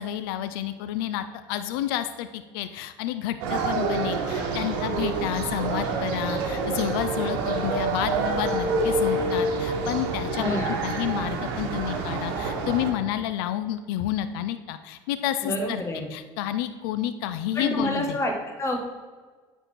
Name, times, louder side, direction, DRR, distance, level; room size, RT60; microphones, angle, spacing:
voice 1, 0.0-15.8 16.1-18.2, left 12 dB, 85° left, 11 dB, 0.4 m, -30 dB
sound 1, 3.4-12.9, right 3 dB, 85° right, 1.1 m, -27 dB
voice 2, 10.4-10.8 15.4-16.1 17.5-18.9, equal, 25° left, 2 dB, 1.8 m, -28 dB
9.1 x 4.3 x 4.5 m, 1.4 s
supercardioid pair, 90°, 12 cm